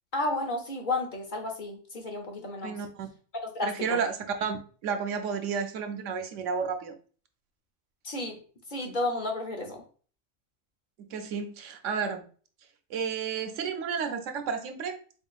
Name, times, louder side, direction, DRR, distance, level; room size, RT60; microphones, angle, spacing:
voice 1, 0.1-2.8 3.4-4.0 8.0-8.4 8.7-9.8, left 2 dB, 45° left, 2 dB, 0.9 m, -32 dB
voice 2, 2.6-3.1 3.6-4.6 4.8-6.9 11.0-12.2 12.9-15.0, right 6 dB, 85° right, 6 dB, 1.0 m, -31 dB
4.3 x 3.7 x 2.3 m, 0.41 s
omnidirectional pair, 1.2 m